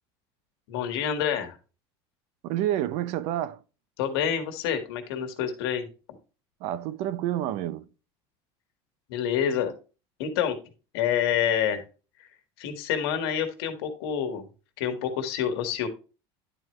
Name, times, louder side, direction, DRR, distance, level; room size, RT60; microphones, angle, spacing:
voice 1, 0.7-1.6 4.0-5.9 9.1-9.7 10.2-10.6 10.9-11.8 12.2-12.3 12.6-14.5 14.8-15.9, left 8 dB, 85° left, 1.6 m, -27 dB
voice 2, 2.4-3.6 6.6-7.9, right 12 dB, 60° right, 0.6 m, -29 dB
11.0 x 4.6 x 3.1 m
cardioid pair, 145°, 13 cm